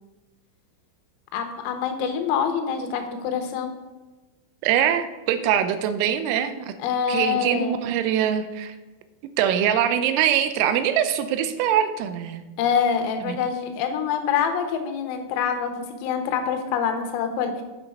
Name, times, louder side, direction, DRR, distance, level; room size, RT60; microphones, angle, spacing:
voice 1, 1.3-3.7 6.8-7.8 12.6-17.6, left 7 dB, 85° left, 6 dB, 3.6 m, -25 dB
voice 2, 4.6-6.7 7.1-8.8 9.4-12.4 13.3-13.4, right 9 dB, 85° right, 10 dB, 3.3 m, -23 dB
8.8 x 6.0 x 5.4 m, 1.1 s
omnidirectional pair, 5.9 m